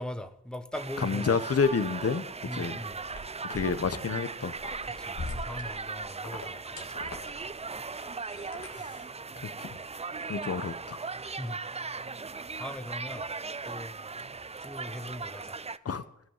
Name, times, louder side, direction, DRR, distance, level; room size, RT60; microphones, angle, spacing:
voice 1, 0.0-1.3 2.4-3.0 5.0-7.1 7.8-7.9 8.8-8.9 9.3-9.5 11.2-11.6 12.6-13.2 13.6-13.9 14.6-15.6, left 1 dB, 5° left, 8 dB, 1.0 m, -40 dB
sound 1, 0.7-15.8, right 4 dB, 20° right, 0.4 m, -38 dB
voice 2, 1.0-2.2 2.5-2.8 3.5-4.5 8.8-8.9 9.4-9.8 10.3-11.0 15.8-16.0, left 5 dB, 55° left, 11 dB, 0.9 m, -29 dB
sound 2, 3.0-4.1 4.3-8.9, left 3 dB, 80° left, 1.8 m, -42 dB
14.0 x 5.5 x 7.1 m, 0.72 s
cardioid pair, 60°, 29 cm